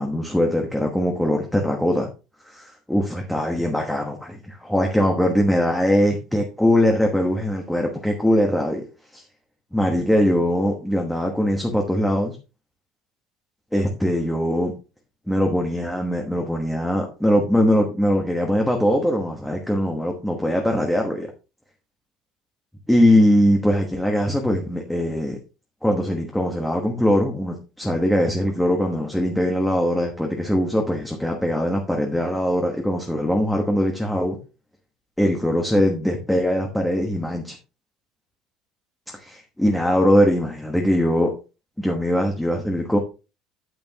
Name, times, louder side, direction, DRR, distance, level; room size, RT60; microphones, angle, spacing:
voice 1, 0.0-2.1 2.5-8.8 9.1-9.2 9.7-12.4 13.7-14.7 15.3-21.3 22.9-25.4 25.8-34.4 35.2-37.6 39.1-41.3 41.8-43.0, equal, ahead, 1 dB, 1.1 m, -21 dB
9.2 x 8.7 x 2.9 m, 0.30 s
cardioid pair, 175°, 0 cm